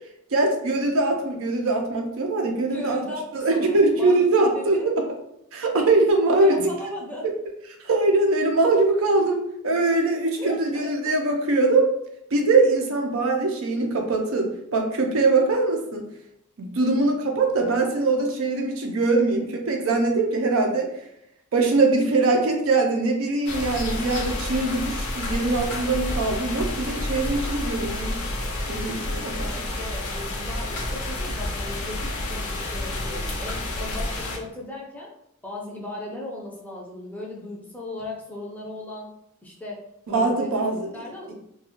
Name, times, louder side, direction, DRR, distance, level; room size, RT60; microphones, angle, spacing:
voice 1, 0.3-3.0 3.3-4.9 5.5-6.5 7.8-11.9 12.3-16.0 16.6-20.9 21.5-28.2 28.7-29.5 40.1-40.9, right 3 dB, 70° right, 2 dB, 0.5 m, -22 dB
voice 2, 2.7-4.3 4.5-4.9 6.4-7.3 10.4-10.9 29.3-35.1 35.4-39.1 39.4-40.5 40.9-41.3, left 2 dB, 10° left, -3 dB, 0.4 m, -37 dB
sound 1, 23.5-34.4, left 1 dB, 85° left, 0.5 m, -30 dB
2.4 x 2.3 x 2.9 m, 0.77 s
head